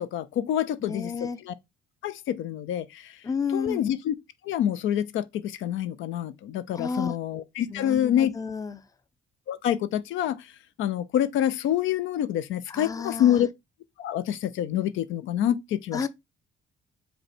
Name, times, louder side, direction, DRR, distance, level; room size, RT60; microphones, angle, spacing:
voice 1, 0.0-1.5 2.0-3.1 3.5-4.1 4.4-8.3 9.5-10.5 10.8-13.5 14.0-16.1, left 11 dB, 75° left, 0.4 m, -27 dB
voice 2, 0.8-1.4 3.2-3.8 6.7-7.2 7.7-8.8 12.7-13.4 15.9-16.1, left 5 dB, 15° left, 0.5 m, -31 dB
5.2 x 2.2 x 4.2 m
cardioid pair, 90°, 20 cm